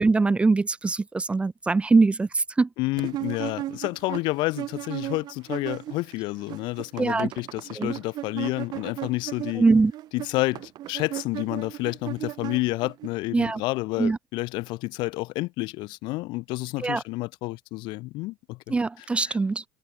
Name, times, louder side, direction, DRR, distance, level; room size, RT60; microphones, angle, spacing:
voice 1, 0.0-2.7 7.0-7.3 7.8-7.9 9.6-9.9 13.3-13.6 14.0-14.2 16.8-17.0 18.7-19.6, right 3 dB, 15° right, 0.5 m, -22 dB
voice 2, 2.8-9.6 10.1-18.7 19.2-19.4, left 21 dB, 60° left, 0.6 m, -30 dB
sound 1, 3.0-6.1 6.4-13.1, right 14 dB, 50° right, 2.5 m, -36 dB
supercardioid pair, 115°, 9 cm